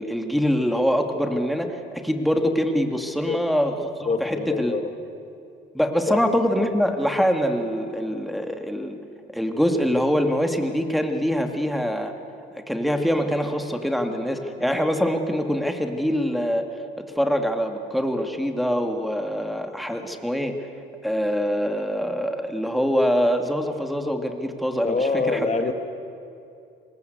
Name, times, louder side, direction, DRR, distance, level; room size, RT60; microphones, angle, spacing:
voice 1, 0.0-4.7 5.7-9.0 9.3-12.1 12.7-16.6 17.2-20.5 21.0-25.5, equal, ahead, 4 dB, 2.4 m, -24 dB
voice 2, 4.1-4.9 6.1-6.2 24.8-25.7, left 4 dB, 35° left, 6 dB, 1.7 m, -25 dB
25.5 x 20.5 x 8.1 m, 2.6 s
cardioid pair, 90°, 20 cm